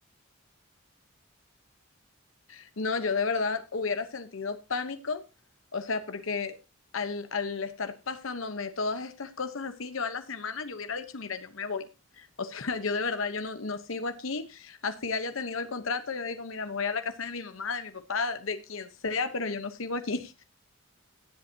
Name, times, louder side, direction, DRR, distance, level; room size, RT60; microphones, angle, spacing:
voice 1, 2.5-5.2 5.7-6.5 6.9-11.9 12.2-20.4, left 4 dB, 80° left, 9 dB, 1.0 m, -32 dB
18.0 x 8.0 x 2.8 m, 0.28 s
head